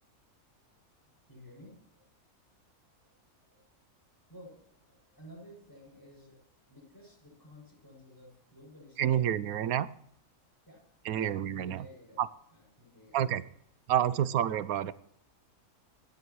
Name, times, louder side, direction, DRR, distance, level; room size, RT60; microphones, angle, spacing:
voice 1, 1.0-2.0 3.0-3.6 4.3-6.4 6.7-9.4 10.7-10.8 11.1-11.3 11.7-12.3 12.5-13.2, equal, 15° left, -3 dB, 7.5 m, -54 dB
voice 2, 9.0-9.9 11.0-11.9 12.2-12.3 13.1-13.4 13.9-14.9, right 10 dB, 75° right, 16 dB, 1.2 m, -28 dB
26.5 x 11.5 x 3.1 m, 0.71 s
omnidirectional pair, 1.6 m